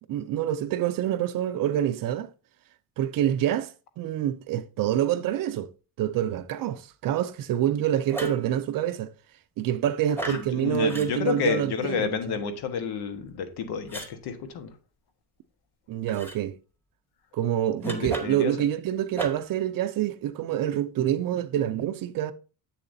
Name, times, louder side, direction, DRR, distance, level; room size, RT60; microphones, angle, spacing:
voice 1, 0.1-2.3 3.0-3.7 4.0-5.7 6.0-9.1 9.6-12.4 15.9-16.5 17.3-22.3, right 11 dB, 60° right, 0.5 m, -27 dB
sound 1, 8.1-8.5 10.1-10.5 10.9-11.1 13.9-14.1 16.1-16.4 17.8-18.5 19.1-19.5, right 1 dB, 5° left, 1.0 m, -35 dB
voice 2, 10.3-14.7 17.9-18.5, left 6 dB, 85° left, 1.3 m, -30 dB
7.7 x 7.0 x 2.6 m
cardioid pair, 160°, 37 cm